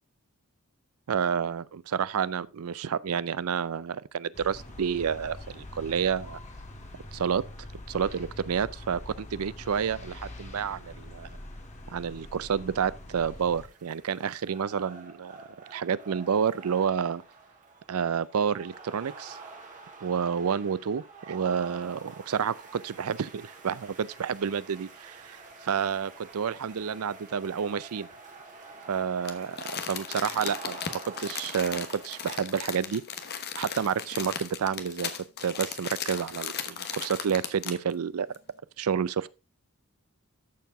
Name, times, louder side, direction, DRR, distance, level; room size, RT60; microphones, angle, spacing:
voice 1, 1.1-6.4 7.1-11.4 11.9-15.3 15.7-17.2 17.9-19.4 20.0-28.1 28.9-33.0 33.6-35.1 35.4-38.3 38.8-39.3, right 7 dB, 75° right, 0.5 m, -29 dB
sound 1, 4.3-13.7, left 1 dB, 35° left, 1.7 m, -44 dB
sound 2, 13.2-32.4, right 3 dB, 35° right, 2.0 m, -48 dB
Crumpling crinkling, 29.2-37.9 38.3-38.4, left 7 dB, 50° left, 1.1 m, -37 dB
13.5 x 4.7 x 3.6 m
head